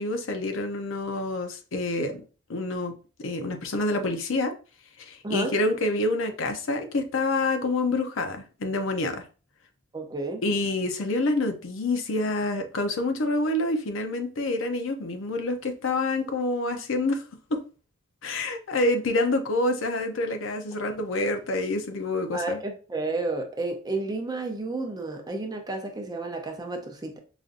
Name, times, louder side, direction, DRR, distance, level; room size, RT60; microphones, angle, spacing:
voice 1, 0.0-2.2 2.5-2.9 3.2-4.5 5.0-9.2 10.4-17.2 17.5-17.6 18.2-22.6, left 2 dB, 70° left, 0.6 m, -27 dB
voice 2, 5.2-5.5 9.9-10.4 22.3-27.2, right 2 dB, 20° right, 0.5 m, -31 dB
4.9 x 2.6 x 2.5 m
head